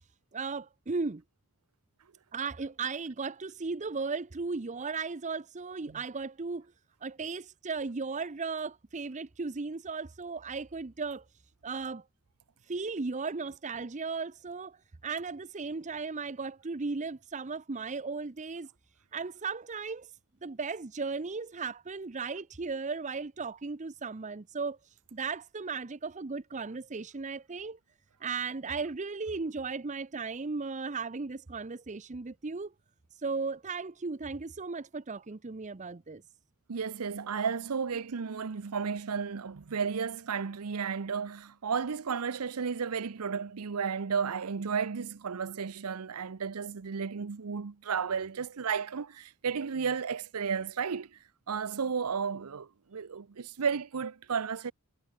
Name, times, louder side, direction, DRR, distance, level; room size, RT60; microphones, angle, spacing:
voice 1, 0.3-1.2 2.3-6.7 7.0-11.2 11.6-12.0 12.6-18.7 19.1-20.1 20.4-27.8 28.2-32.7 33.1-36.2, right 4 dB, 35° right, 0.7 m, -36 dB
voice 2, 36.7-51.2 51.5-54.7, right 6 dB, 90° right, 0.7 m, -33 dB
head